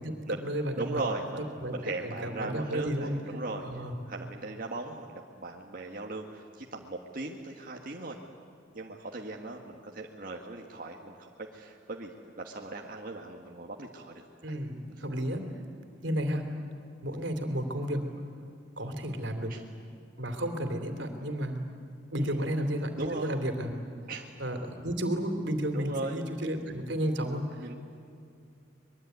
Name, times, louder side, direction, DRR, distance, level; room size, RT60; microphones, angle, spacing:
voice 1, 0.0-1.0 1.4-1.7 2.0-3.1 3.6-3.9 14.4-15.4 16.0-16.6 17.0-18.0 18.8-19.5 20.2-21.6 22.1-23.7 24.4-27.7, equal, 80° right, 6 dB, 3.1 m, -32 dB
voice 2, 0.8-8.2 8.7-14.6 19.5-19.6 22.2-22.4 23.0-23.4 24.1-24.3 25.7-26.2 27.6-27.7, right 2 dB, 50° right, 0 dB, 1.6 m, -38 dB
24.0 x 22.0 x 9.4 m, 2.5 s
head